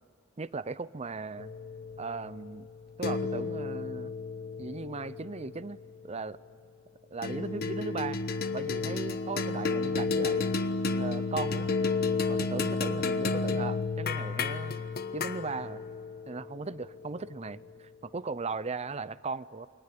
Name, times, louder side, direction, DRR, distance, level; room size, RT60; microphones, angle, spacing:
voice 1, 0.4-1.5 2.0-2.7 3.0-4.1 4.6-6.4 7.1-8.2 8.5-10.5 10.9-11.7 12.3-14.8 15.1-15.8 16.3-19.7, right 4 dB, 30° right, 16 dB, 0.6 m, -37 dB
sound 1, 1.4-6.0 7.2-17.7, left 4 dB, 50° left, 1.0 m, -32 dB
29.0 x 23.0 x 8.6 m, 2.4 s
head